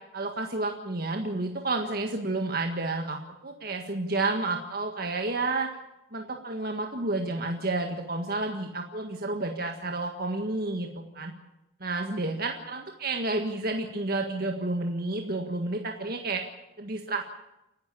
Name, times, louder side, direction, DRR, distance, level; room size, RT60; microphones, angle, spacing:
voice 1, 0.1-5.7 6.1-11.3 11.8-16.4 16.8-17.4, right 2 dB, 50° right, 3 dB, 1.7 m, -30 dB
28.5 x 12.5 x 8.4 m, 0.91 s
head